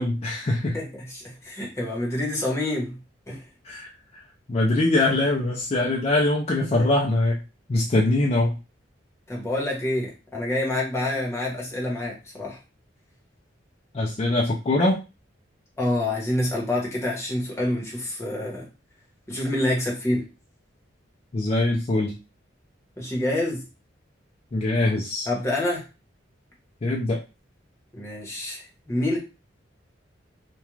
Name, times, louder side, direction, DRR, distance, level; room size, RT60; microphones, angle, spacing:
voice 1, 0.0-0.8 3.6-3.9 4.5-7.4 7.7-8.6 13.9-15.0 21.3-22.1 24.5-25.3 26.8-27.2, left 2 dB, 35° left, -1 dB, 0.4 m, -22 dB
voice 2, 0.7-3.0 3.3-3.5 9.3-12.6 15.8-18.7 19.3-20.3 23.0-23.6 25.3-25.8 27.9-29.2, left 1 dB, 15° left, -3 dB, 0.9 m, -27 dB
2.4 x 2.2 x 3.0 m, 0.29 s
head